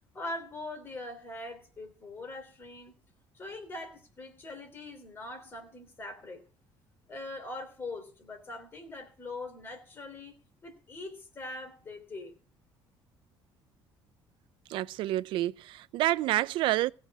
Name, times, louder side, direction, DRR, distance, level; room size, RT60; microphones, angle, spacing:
voice 1, 0.1-2.9 3.3-6.4 7.1-10.3 10.6-12.3, left 2 dB, 25° left, 3.3 m, -42 dB
voice 2, 14.7-16.9, right 15 dB, 65° right, 0.5 m, -28 dB
16.5 x 5.6 x 6.1 m
cardioid pair, 145°, 9 cm